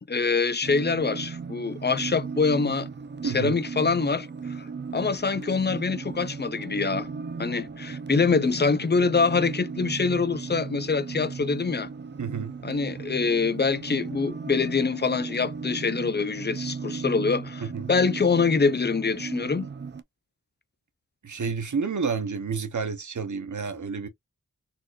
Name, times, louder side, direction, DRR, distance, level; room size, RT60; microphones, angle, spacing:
voice 1, 0.1-2.9 3.2-4.7 4.9-7.1 7.4-11.9 12.6-19.7, left 4 dB, 35° left, 0.4 m, -25 dB
sound 1, 0.6-20.0, right 5 dB, 35° right, 0.4 m, -36 dB
voice 2, 3.2-3.6 12.2-12.5 17.6-17.9 21.2-24.1, right 5 dB, 65° right, 0.8 m, -30 dB
4.2 x 2.4 x 2.3 m
wide cardioid pair, 65°, 32 cm